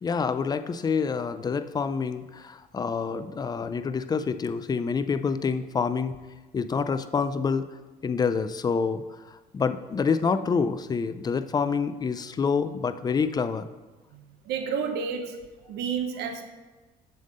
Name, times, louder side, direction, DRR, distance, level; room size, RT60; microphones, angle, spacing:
voice 1, 0.0-6.1 6.5-7.7 8.0-9.0 9.3-13.7, left 5 dB, 25° left, 11 dB, 0.4 m, -27 dB
voice 2, 14.5-15.3 15.7-16.4, right 6 dB, 75° right, 5 dB, 0.8 m, -30 dB
7.6 x 3.6 x 6.4 m, 1.2 s
cardioid pair, 110°, 17 cm